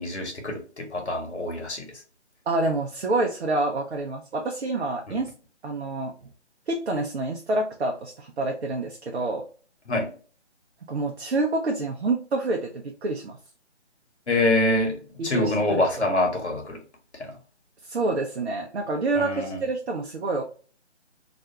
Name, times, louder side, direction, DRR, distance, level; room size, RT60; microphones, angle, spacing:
voice 1, 0.0-1.9 5.1-5.2 9.9-10.1 14.3-16.8 17.2-17.3 19.1-19.6, left 2 dB, 70° left, 2 dB, 1.1 m, -25 dB
voice 2, 2.5-5.3 5.6-6.1 6.7-9.4 10.9-13.4 15.2-15.9 17.8-20.4, right 2 dB, 65° right, 2 dB, 0.5 m, -27 dB
2.4 x 2.2 x 2.8 m, 0.40 s
figure-of-eight pair, 150°, 35 cm